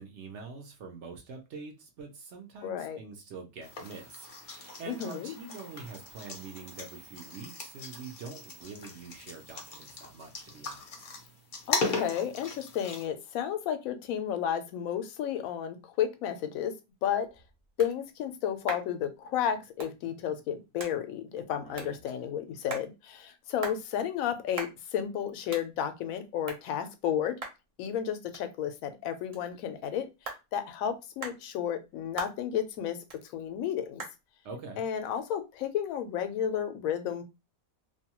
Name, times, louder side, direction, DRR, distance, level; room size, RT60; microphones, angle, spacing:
voice 1, 0.0-11.0 21.5-22.0 34.4-34.8, right 4 dB, 60° right, 0.8 m, -45 dB
voice 2, 2.6-3.0 4.9-5.3 11.7-16.7 17.0-17.3 17.8-27.4 27.8-33.0 33.2-34.0 34.8-37.2, left 9 dB, 75° left, 1.0 m, -32 dB
sound 1, 3.6-13.1, left 3 dB, 45° left, 0.7 m, -38 dB
sound 2, 16.9-36.2, right 3 dB, 45° right, 0.5 m, -46 dB
2.7 x 2.2 x 2.9 m
omnidirectional pair, 1.5 m